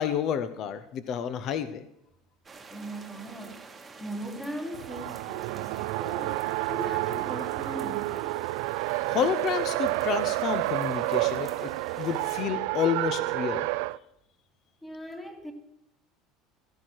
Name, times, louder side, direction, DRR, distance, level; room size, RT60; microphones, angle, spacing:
voice 1, 0.0-1.9 9.1-11.7 12.0-13.7, left 8 dB, 35° left, 0.7 m, -30 dB
sound 1, 2.4-12.4, right 4 dB, 10° right, 1.3 m, -49 dB
voice 2, 2.7-3.7 4.0-8.4 14.8-15.5, right 1 dB, 5° left, 1.6 m, -39 dB
Race car auto racing, 4.7-14.0, right 20 dB, 65° right, 0.4 m, -30 dB
15.5 x 14.0 x 4.6 m
cardioid pair, 175°, 0 cm